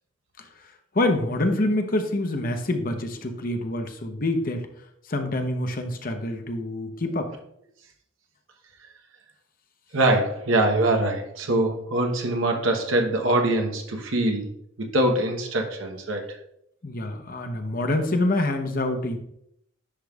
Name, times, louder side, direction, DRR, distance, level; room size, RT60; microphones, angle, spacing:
voice 1, 0.9-4.7 5.1-7.3 16.8-19.2, left 1 dB, 45° left, 5 dB, 0.8 m, -26 dB
voice 2, 9.9-14.5 14.8-16.4, right 1 dB, 85° right, 3 dB, 1.0 m, -23 dB
10.0 x 5.2 x 2.4 m, 0.73 s
head